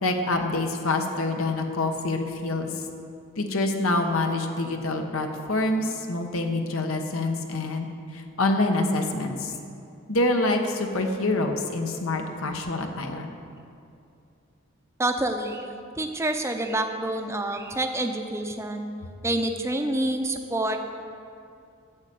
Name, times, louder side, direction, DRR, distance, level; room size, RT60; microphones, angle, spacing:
voice 1, 0.0-2.7 3.4-7.9 8.1-9.5 10.1-13.3, left 2 dB, 75° left, 4 dB, 1.2 m, -26 dB
voice 2, 15.0-15.7 16.0-18.9 19.2-20.9, right 1 dB, 15° right, 5 dB, 0.7 m, -27 dB
11.5 x 7.5 x 8.5 m, 2.5 s
head